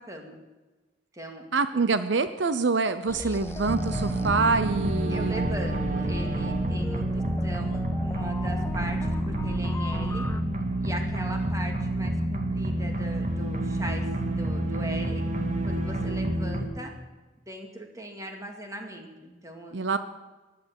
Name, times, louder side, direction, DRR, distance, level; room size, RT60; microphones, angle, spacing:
voice 1, 0.1-0.4 1.1-1.4 1.7-1.8 5.1-10.3 10.8-15.2 15.6-16.9 17.5-19.7, right 1 dB, 20° right, 3 dB, 2.4 m, -39 dB
voice 2, 1.5-5.6 19.7-20.0, right 4 dB, 70° right, 12 dB, 0.7 m, -26 dB
sound 1, 3.1-10.4, left 1 dB, 15° left, 0.5 m, -38 dB
sound 2, 3.7-16.6, right 1 dB, 45° right, 2.0 m, -28 dB
15.5 x 11.0 x 7.1 m, 1.2 s
head